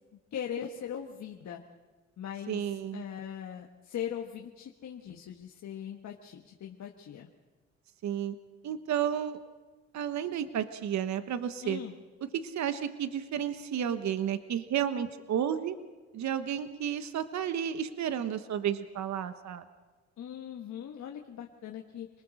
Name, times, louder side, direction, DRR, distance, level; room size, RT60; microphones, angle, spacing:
voice 1, 0.3-1.6 2.2-7.3 11.6-11.9 20.2-22.1, left 9 dB, 65° left, 2 dB, 1.6 m, -40 dB
voice 2, 2.5-3.0 8.0-8.4 8.6-9.4 9.9-11.8 12.3-15.8 16.1-19.6, right 9 dB, 65° right, 10 dB, 1.2 m, -32 dB
27.0 x 20.0 x 6.4 m, 1.3 s
cardioid pair, 90°, 30 cm